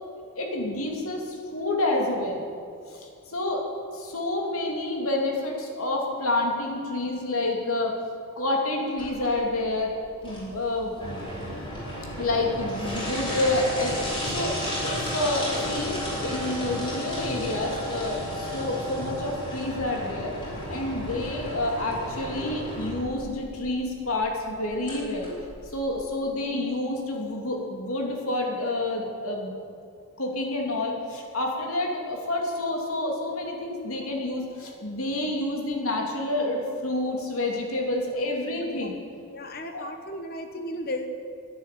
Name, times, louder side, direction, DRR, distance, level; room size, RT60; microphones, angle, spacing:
voice 1, 0.3-2.4 2.9-3.6 3.9-8.0 8.4-9.9 10.2-11.2 12.2-14.0 14.3-14.5 14.8-20.3 20.7-25.3 25.6-29.5 30.2-39.0 39.7-39.8, left 2 dB, 85° left, 0 dB, 2.7 m, -28 dB
sound 1, 9.0-26.0, equal, 25° left, 4.3 m, -33 dB
voice 2, 38.5-38.9 39.3-41.1, left 1 dB, 45° left, 6 dB, 1.3 m, -35 dB
11.5 x 10.5 x 9.2 m, 2.3 s
head